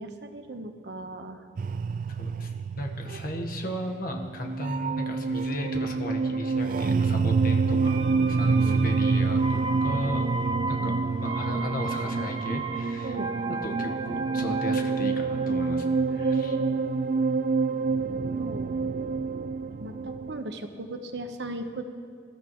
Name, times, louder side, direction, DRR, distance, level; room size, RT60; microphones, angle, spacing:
voice 1, 0.0-1.4 8.3-8.8 10.5-11.0 13.0-13.3 16.1-17.0 17.7-18.7 19.8-21.8, right 2 dB, 75° right, 6 dB, 1.1 m, -38 dB
sound 1, 1.6-20.4, right 4 dB, 50° right, 0.3 m, -27 dB
voice 2, 2.2-8.0 8.3-10.3 10.7-10.9 11.2-13.2 13.6-16.6, left 1 dB, 55° left, 2 dB, 1.4 m, -35 dB
sound 2, 7.8-17.5 17.8-17.9, right 3 dB, 30° right, 0.8 m, -36 dB
26.5 x 13.5 x 3.1 m, 2.1 s
head